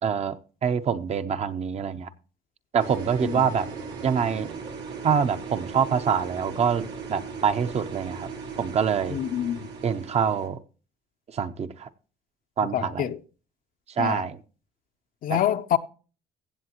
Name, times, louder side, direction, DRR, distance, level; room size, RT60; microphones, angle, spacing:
voice 1, 0.0-2.1 2.7-3.7 4.0-4.5 5.0-8.3 8.6-9.2 9.8-10.6 11.3-11.9 12.6-13.0 14.0-14.4 15.3-15.4, right 7 dB, 40° right, 0.7 m, -25 dB
sound 1, 2.8-10.5, right 5 dB, 90° right, 2.4 m, -38 dB
voice 2, 9.1-9.7 12.7-13.2 14.0-14.2 15.2-15.8, left 11 dB, 55° left, 0.6 m, -26 dB
16.0 x 7.5 x 2.9 m
cardioid pair, 110°, 17 cm